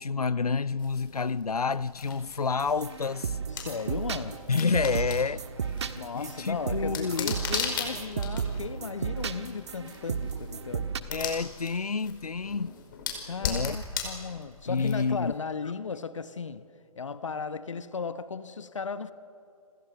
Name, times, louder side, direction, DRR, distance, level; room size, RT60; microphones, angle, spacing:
voice 1, 0.0-3.4 4.5-5.7 6.1-7.3 11.1-12.8 13.4-13.8 14.7-15.3, left 5 dB, 80° left, 0.6 m, -29 dB
sound 1, 0.8-15.3, left 6 dB, 35° left, 5.1 m, -39 dB
sound 2, 2.6-11.0, right 6 dB, 45° right, 1.5 m, -34 dB
voice 2, 3.5-4.5 5.9-10.9 13.2-16.7 17.0-19.1, left 5 dB, 55° left, 1.2 m, -36 dB
29.5 x 26.0 x 6.6 m
figure-of-eight pair, 135°, 19 cm